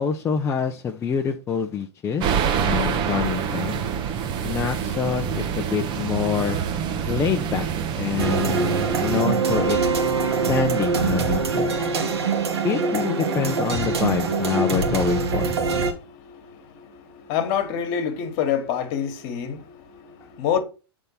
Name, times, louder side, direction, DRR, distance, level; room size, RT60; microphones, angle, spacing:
voice 1, 0.0-2.2 2.7-3.8 4.4-6.6 7.1-7.7 8.0-9.8 10.4-11.7 12.6-15.5, left 7 dB, 20° left, 0.6 m, -26 dB
sound 1, 2.2-9.2, right 7 dB, 35° right, 0.8 m, -26 dB
sound 2, 8.2-15.9, right 4 dB, 75° right, 1.6 m, -23 dB
voice 2, 15.9-20.6, left 8 dB, 45° left, 1.5 m, -27 dB
6.6 x 3.6 x 5.5 m
hypercardioid pair, 110°, 14 cm